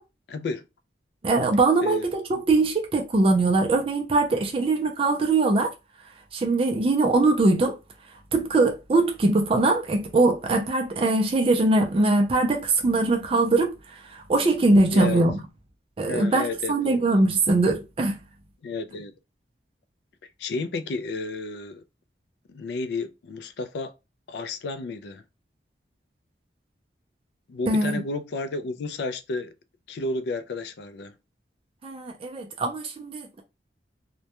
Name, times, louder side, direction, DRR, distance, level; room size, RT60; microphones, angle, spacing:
voice 1, 0.3-0.7 1.8-2.1 2.3-2.4 14.9-15.2 16.1-17.3 18.6-19.1 20.4-21.8 22.5-23.9 24.3-25.2 27.5-29.5 29.9-31.1, left 3 dB, 65° left, 0.3 m, -32 dB
voice 2, 1.2-5.7 6.3-7.7 8.3-13.8 14.1-15.3 16.0-18.2 27.7-28.0 31.8-33.4, right 2 dB, 30° right, 0.4 m, -22 dB
2.2 x 2.1 x 2.8 m
head